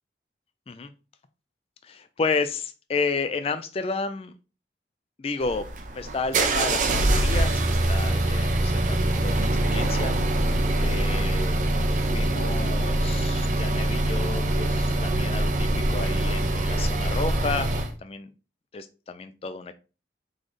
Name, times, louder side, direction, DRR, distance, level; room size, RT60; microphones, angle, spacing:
voice 1, 1.8-4.3 5.2-5.7 5.9-10.2 10.8-11.5 11.9-17.7 18.0-18.3 18.7-19.7, left 4 dB, 35° left, 10 dB, 0.3 m, -31 dB
sound 1, 5.4-17.9, right 1 dB, 45° right, 0.6 m, -24 dB
3.9 x 3.8 x 3.2 m, 0.32 s
head